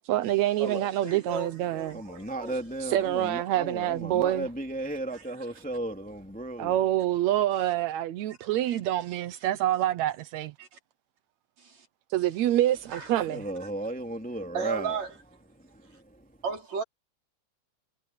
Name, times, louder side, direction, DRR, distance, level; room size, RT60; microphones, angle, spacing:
voice 1, 0.1-2.0 2.8-4.5 6.6-10.5 12.1-13.4, right 13 dB, 75° right, 1.6 m, -26 dB
voice 2, 0.6-2.5 5.1-5.2 8.7-8.8 10.6-10.7 11.6-11.9 12.9-13.1 14.5-15.1 16.4-16.8, right 5 dB, 50° right, 5.2 m, -35 dB
voice 3, 1.9-6.7 13.3-15.0 15.5-16.3, right 2 dB, 5° left, 2.2 m, -35 dB
omnidirectional pair, 4.2 m